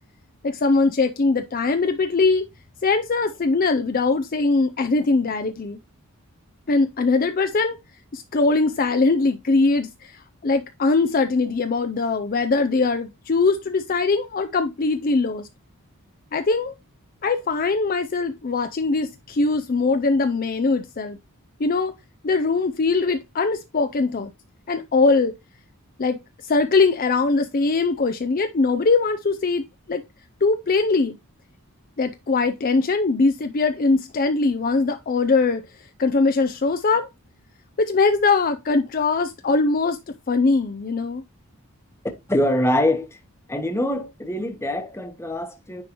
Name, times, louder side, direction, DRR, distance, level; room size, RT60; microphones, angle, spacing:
voice 1, 0.4-2.4 2.8-5.8 6.7-7.8 8.1-15.5 16.3-16.7 17.2-21.2 21.6-21.9 22.2-24.3 24.7-25.3 26.0-30.0 30.4-31.2 32.0-37.1 37.8-40.0 40.3-41.2, left 3 dB, 40° left, 0.5 m, -21 dB
voice 2, 42.3-43.2 43.5-45.8, left 1 dB, 10° left, 1.0 m, -24 dB
9.6 x 3.8 x 3.0 m
head